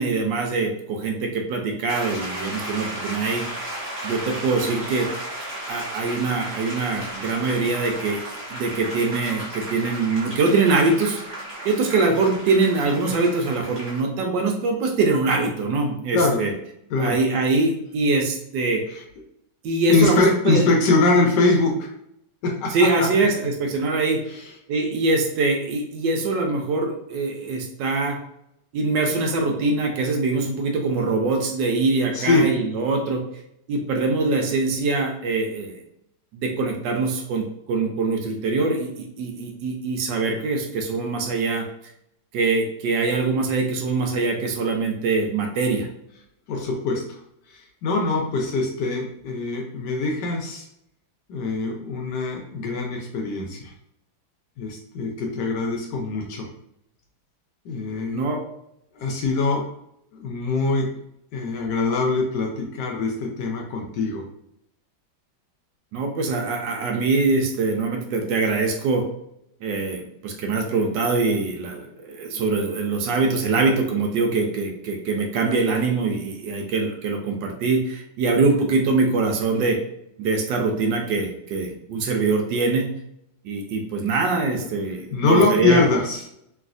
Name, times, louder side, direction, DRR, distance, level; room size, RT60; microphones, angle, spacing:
voice 1, 0.0-3.4 4.0-5.1 5.7-8.2 8.5-11.2 11.6-16.5 17.0-18.8 19.6-20.6 22.7-24.2 24.7-28.2 28.7-33.2 33.7-35.8 36.3-41.6 42.3-45.9 58.1-58.4 65.9-69.0 69.6-79.8 80.2-82.9 83.4-85.9, right 3 dB, 75° right, 2 dB, 1.2 m, -23 dB
sound 1, 1.9-14.0, right 1 dB, 40° right, 0.7 m, -34 dB
voice 2, 19.9-21.9 22.4-23.1 32.1-32.5 46.5-47.2 47.5-50.6 51.3-53.7 54.6-56.5 57.6-58.3 58.9-59.6 60.1-60.9 61.3-64.2 85.1-86.2, left 3 dB, 75° left, 1 dB, 1.1 m, -23 dB
3.1 x 2.7 x 2.5 m, 0.76 s
omnidirectional pair, 2.1 m